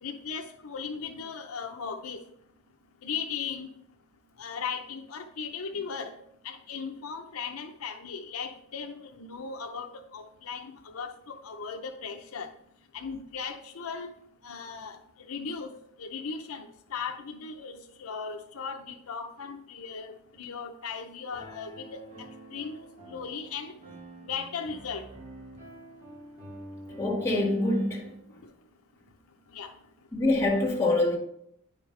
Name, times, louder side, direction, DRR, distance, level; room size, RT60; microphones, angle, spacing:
voice 1, 0.0-2.2 3.0-3.7 4.4-6.1 6.4-12.5 12.9-14.1 14.4-15.0 15.3-15.7 16.0-22.0 22.5-22.8 23.1-23.7 24.3-25.0 29.5-29.7, left 5 dB, 80° left, 0.6 m, -37 dB
Piano, 21.3-28.2, right 1 dB, 35° right, 2.5 m, -47 dB
voice 2, 27.0-28.2 30.1-31.2, left 2 dB, 15° left, 1.9 m, -25 dB
9.9 x 5.2 x 3.2 m
head